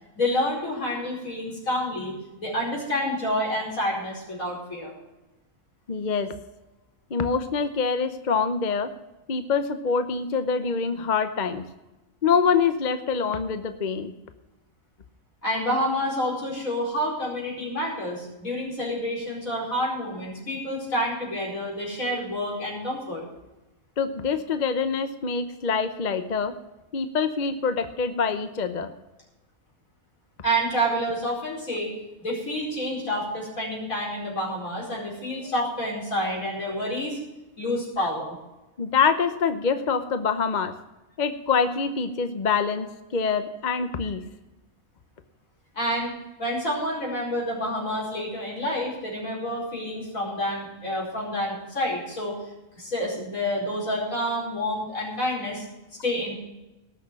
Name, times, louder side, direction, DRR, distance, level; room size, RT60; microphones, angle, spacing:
voice 1, 0.2-2.1 2.4-4.9 15.4-23.2 30.4-31.9 32.2-37.2 37.6-38.3 45.7-52.4 52.7-55.6 56.0-56.3, equal, 80° left, -3 dB, 5.2 m, -28 dB
voice 2, 5.9-6.3 7.1-8.9 9.3-11.6 12.2-14.1 24.0-26.5 26.9-28.9 38.8-40.7 41.2-44.2, left 5 dB, 40° left, 9 dB, 0.8 m, -25 dB
18.5 x 6.6 x 6.3 m, 1.0 s
omnidirectional pair, 1.4 m